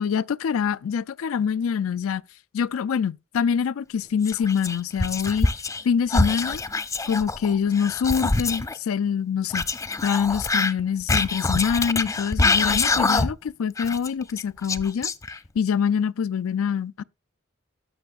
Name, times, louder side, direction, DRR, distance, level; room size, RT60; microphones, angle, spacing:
voice 1, 0.0-2.2 2.5-5.5 5.8-6.6 7.1-9.7 10.0-15.1 15.6-17.0, left 7 dB, 85° left, 0.4 m, -25 dB
Whispering, 4.2-5.8 6.1-8.8 9.5-13.5 13.8-15.6, left 3 dB, 15° left, 0.4 m, -25 dB
18.0 x 6.2 x 2.4 m
head